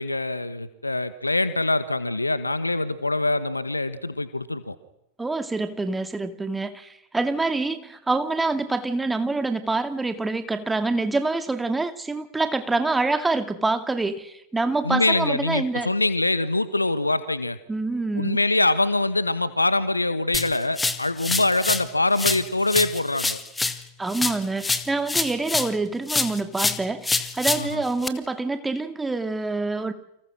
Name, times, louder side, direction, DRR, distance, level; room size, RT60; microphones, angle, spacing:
voice 1, 0.0-4.8 14.8-17.6 18.2-23.4 27.6-27.8, left 2 dB, 85° left, 13 dB, 1.8 m, -24 dB
voice 2, 5.2-15.9 17.7-18.4 24.0-29.9, right 3 dB, 10° right, 8 dB, 2.3 m, -26 dB
sound 1, 20.3-21.9 22.2-25.8 26.1-28.1, left 3 dB, 10° left, 2.0 m, -26 dB
29.5 x 26.5 x 6.4 m, 0.85 s
figure-of-eight pair, 90°, 0 cm